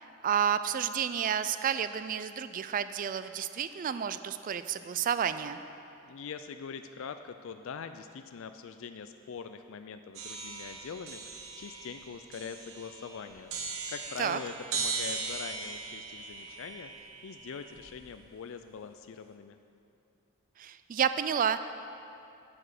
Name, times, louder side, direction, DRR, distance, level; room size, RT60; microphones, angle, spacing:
voice 1, 0.2-5.6 14.2-14.4 20.6-21.6, right 8 dB, 40° right, 12 dB, 0.3 m, -30 dB
voice 2, 6.0-13.5 13.9-19.6, left 6 dB, 60° left, 9 dB, 0.4 m, -43 dB
sound 1, 10.1-18.1, right 4 dB, 65° right, 1.1 m, -39 dB
8.8 x 8.6 x 6.6 m, 2.6 s
head